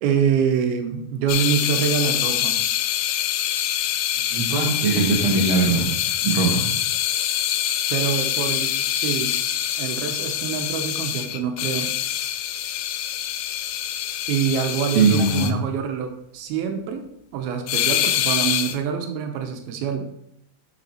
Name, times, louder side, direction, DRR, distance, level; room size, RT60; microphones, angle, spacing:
voice 1, 0.0-2.6 7.9-9.3 9.8-11.9 14.3-17.0 17.3-20.1, right 7 dB, 85° right, 5 dB, 2.7 m, -25 dB
sound 1, 1.3-15.5 17.7-18.8, left 11 dB, 90° left, 2.5 m, -25 dB
voice 2, 4.3-5.9 6.2-6.7 14.9-15.5, right 4 dB, 60° right, -2 dB, 1.3 m, -20 dB
8.0 x 5.8 x 4.4 m, 0.74 s
omnidirectional pair, 4.4 m